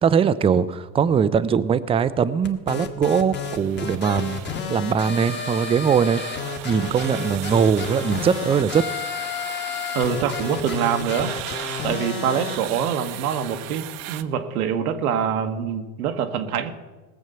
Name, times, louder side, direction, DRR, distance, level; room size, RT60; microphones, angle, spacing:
voice 1, 0.0-6.2 6.6-8.8, right 7 dB, 15° right, 15 dB, 0.4 m, -21 dB
sound 1, 2.4-12.6, left 6 dB, 25° left, 1.5 m, -31 dB
sound 2, 3.4-14.2, right 15 dB, 65° right, 1.0 m, -38 dB
voice 2, 9.9-11.4 11.8-16.7, right 8 dB, 90° right, 7 dB, 1.4 m, -25 dB
19.0 x 7.3 x 6.8 m, 1.3 s
supercardioid pair, 110°, 43 cm